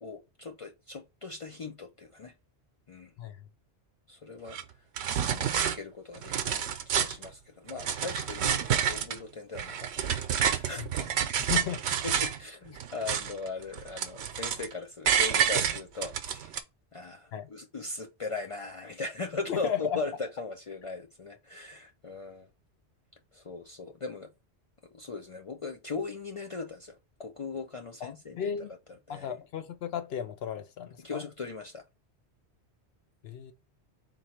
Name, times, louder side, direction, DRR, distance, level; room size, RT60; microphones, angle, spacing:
voice 1, 0.0-2.3 2.9-3.1 4.1-4.6 5.3-10.8 12.0-16.5 16.9-22.5 23.3-24.3 24.8-28.7 29.1-29.3 31.0-31.8, left 4 dB, 55° left, 0.3 m, -39 dB
sound 1, 4.5-4.6 5.0-5.8 6.1-7.3 7.7-9.2 9.5-12.4 12.8-13.5 13.7-14.7 15.1-16.6, right 8 dB, 75° right, 0.9 m, -29 dB
voice 2, 11.4-11.8 17.3-17.5 19.5-20.0 28.0-28.7 29.1-31.2 33.2-33.5, left 8 dB, 70° left, 0.8 m, -34 dB
3.8 x 3.0 x 4.3 m
omnidirectional pair, 1.1 m